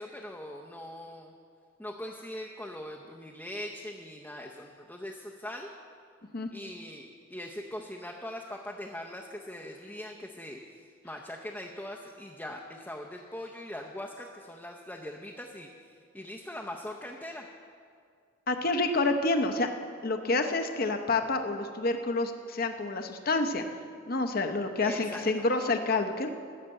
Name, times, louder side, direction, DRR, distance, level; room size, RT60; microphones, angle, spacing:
voice 1, 0.0-1.3 1.8-5.7 6.5-17.5 24.8-25.5, left 1 dB, 10° left, -1 dB, 0.6 m, -41 dB
voice 2, 18.5-19.7 20.0-23.7 24.1-26.3, left 3 dB, 45° left, 6 dB, 0.7 m, -28 dB
14.5 x 6.6 x 7.6 m, 2.2 s
head